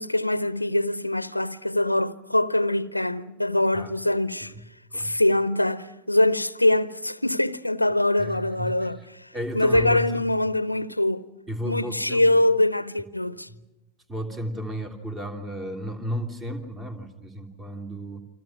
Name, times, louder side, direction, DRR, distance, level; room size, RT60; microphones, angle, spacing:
voice 1, 0.0-4.5 4.9-9.3 9.5-11.3 11.7-13.5, left 1 dB, 85° left, 0.7 m, -23 dB
voice 2, 8.2-9.1 9.3-10.1 11.5-12.2 13.5-13.6 14.1-18.2, equal, 15° right, 3.1 m, -33 dB
29.0 x 24.5 x 6.0 m
figure-of-eight pair, 90°, 0 cm